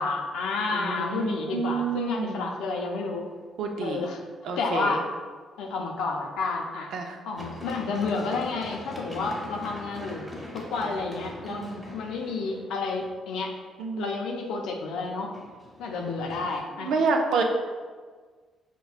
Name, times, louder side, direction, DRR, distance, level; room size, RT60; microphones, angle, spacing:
voice 1, 0.0-3.3 3.8-4.2 4.6-5.1 5.6-6.9 7.2-10.3 10.5-11.7 11.9-13.6 14.0-15.3 15.8-16.9, left 4 dB, 90° left, 2 dB, 0.5 m, -30 dB
voice 2, 0.7-2.6 3.6-4.0 4.4-5.0 6.9-7.2 11.5-11.9 13.8-14.2 16.8-17.4, right 4 dB, 75° right, 3 dB, 0.4 m, -28 dB
Run, 7.4-13.2 15.1-16.6, left 1 dB, ahead, 0.9 m, -42 dB
5.6 x 2.2 x 2.4 m, 1.5 s
cardioid pair, 90°, 0 cm